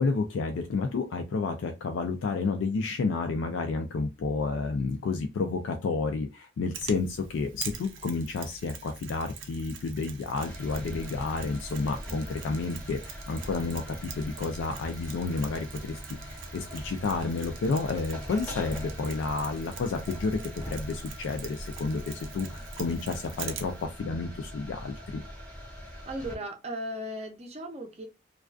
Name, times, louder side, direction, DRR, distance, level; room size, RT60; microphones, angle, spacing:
voice 1, 0.0-25.2, left 4 dB, 85° left, 5 dB, 0.3 m, -31 dB
Mechanisms, 6.7-23.8, right 6 dB, 90° right, 0.5 m, -44 dB
sound 1, 10.3-26.4, equal, 5° left, 0.6 m, -42 dB
voice 2, 26.1-28.0, equal, 35° right, 3 dB, 0.5 m, -36 dB
2.3 x 2.3 x 2.3 m, 0.27 s
head